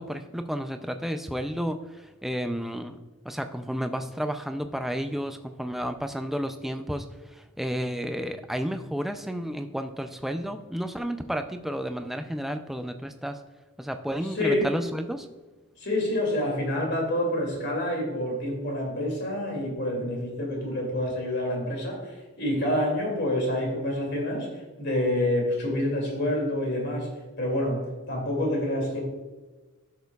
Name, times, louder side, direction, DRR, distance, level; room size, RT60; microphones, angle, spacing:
voice 1, 0.0-3.0 3.2-7.1 7.3-13.4 13.8-15.3, equal, ahead, 7 dB, 0.4 m, -31 dB
voice 2, 14.3-14.7 15.8-24.5 24.8-27.1 27.4-29.0, left 1 dB, 50° left, 0 dB, 2.5 m, -27 dB
12.0 x 6.6 x 2.3 m, 1.2 s
head